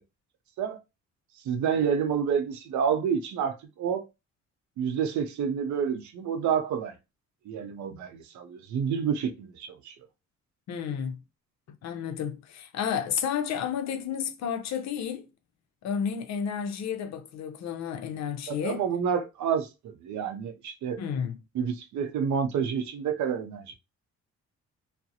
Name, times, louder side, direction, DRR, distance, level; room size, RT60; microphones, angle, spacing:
voice 1, 1.4-4.1 4.8-6.9 7.5-9.9 18.5-21.0 21.5-23.7, right 7 dB, 70° right, 0.6 m, -29 dB
voice 2, 10.7-11.2 11.8-15.3 15.8-18.8 21.0-21.4, left 7 dB, 65° left, 0.6 m, -31 dB
2.4 x 2.0 x 2.7 m
cardioid pair, 90°, 30 cm